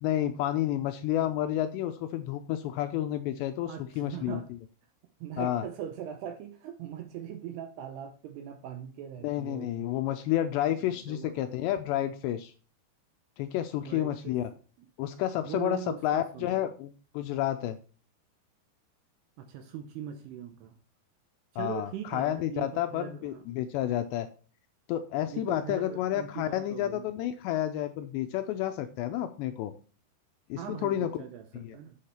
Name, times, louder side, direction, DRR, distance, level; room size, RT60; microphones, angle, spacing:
voice 1, 0.0-4.4 5.4-5.6 9.2-12.5 13.4-14.5 15.0-17.8 21.6-24.3 24.9-29.7 30.5-31.2 31.5-31.8, left 12 dB, 85° left, 8 dB, 2.5 m, -30 dB
voice 2, 3.7-4.5 5.2-9.9 10.8-11.5 13.9-14.4 15.4-16.6 19.4-20.8 21.5-23.4 25.3-27.1 30.6-32.0, right 9 dB, 80° right, 6 dB, 2.5 m, -41 dB
8.4 x 6.6 x 4.3 m, 0.38 s
omnidirectional pair, 5.5 m